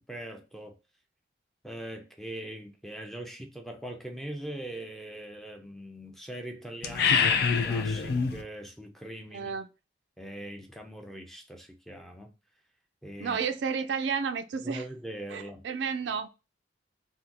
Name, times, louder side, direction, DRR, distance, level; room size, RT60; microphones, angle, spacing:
voice 1, 0.1-0.8 1.6-9.5 10.2-12.3 13.0-13.4 14.6-15.6, right 1 dB, ahead, 0.5 m, -41 dB
sound 1, 6.8-8.4, left 6 dB, 60° left, 0.4 m, -25 dB
voice 2, 9.3-9.7 13.2-14.8 15.3-16.3, right 6 dB, 80° right, 0.4 m, -31 dB
2.7 x 2.3 x 3.5 m
head